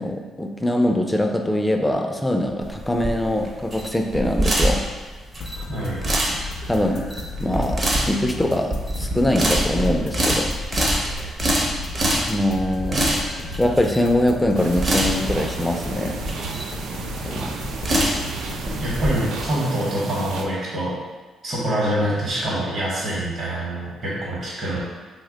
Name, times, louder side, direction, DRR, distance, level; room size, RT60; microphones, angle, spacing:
voice 1, 0.0-4.8 6.7-7.0 7.4-10.5 11.1-11.4 12.1-13.1 13.6-16.2 17.2-17.5 22.0-22.1, left 1 dB, 10° left, 3 dB, 0.3 m, -23 dB
sound 1, 2.6-19.1, right 1 dB, 35° right, 0.6 m, -25 dB
sound 2, 5.4-19.5, left 2 dB, 70° left, 0.5 m, -36 dB
voice 2, 5.7-6.0 18.8-21.0 21.4-24.8, right 1 dB, 50° right, -6 dB, 0.9 m, -25 dB
sound 3, 14.5-20.4, right 4 dB, 80° right, 0.3 m, -33 dB
2.8 x 2.1 x 3.7 m, 1.3 s
cardioid pair, 90°, 0 cm